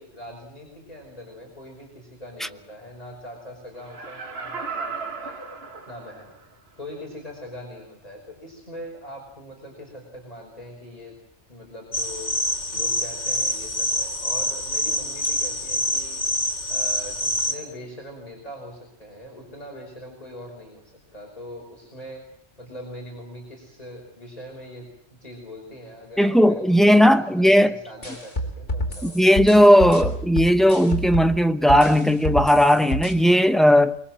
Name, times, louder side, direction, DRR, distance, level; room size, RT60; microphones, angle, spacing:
voice 1, 0.0-5.4 5.9-6.3 6.8-11.2 11.5-12.4 12.7-16.2 16.7-22.2 22.6-24.9 25.2-29.3, left 1 dB, 35° left, 5.6 m, -41 dB
Laughter, 3.8-6.4 6.9-7.0, right 4 dB, 60° right, 2.2 m, -35 dB
sound 1, 11.9-17.6, left 1 dB, 80° left, 3.1 m, -26 dB
voice 2, 26.2-27.7 29.0-34.0, equal, ahead, 0.7 m, -16 dB
sound 2, 28.0-31.4 31.7-33.1, equal, 50° left, 4.1 m, -28 dB
25.0 x 22.5 x 7.5 m
omnidirectional pair, 1.2 m